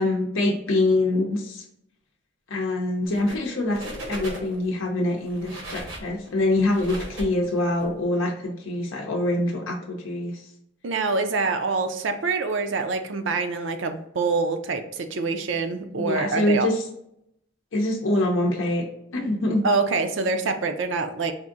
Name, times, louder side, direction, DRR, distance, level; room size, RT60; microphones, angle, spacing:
voice 1, 0.0-1.6 2.5-10.4 16.0-16.8 17.7-18.9 19.1-19.6, left 1 dB, 85° left, -1 dB, 0.6 m, -24 dB
sound 1, 3.0-3.5 3.7-4.7 5.2-7.9, right 1 dB, 85° right, 1.1 m, -37 dB
voice 2, 10.8-16.7 19.6-21.3, right 4 dB, 70° right, 7 dB, 0.5 m, -25 dB
4.2 x 2.6 x 2.5 m, 0.76 s
head